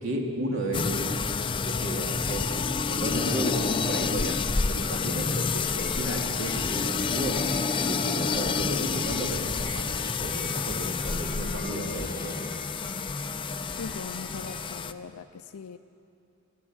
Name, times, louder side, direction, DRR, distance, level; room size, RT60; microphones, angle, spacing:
voice 1, 0.0-1.2 1.6-7.4 7.8-12.6 14.3-14.4, equal, 65° right, 0 dB, 2.7 m, -33 dB
sound 1, 0.7-14.9, left 5 dB, 20° left, 0.4 m, -29 dB
sound 2, 3.5-14.6, right 1 dB, 40° right, 2.9 m, -47 dB
voice 2, 13.8-15.8, left 5 dB, 85° left, 8 dB, 0.5 m, -40 dB
18.0 x 14.5 x 9.9 m, 2.6 s
head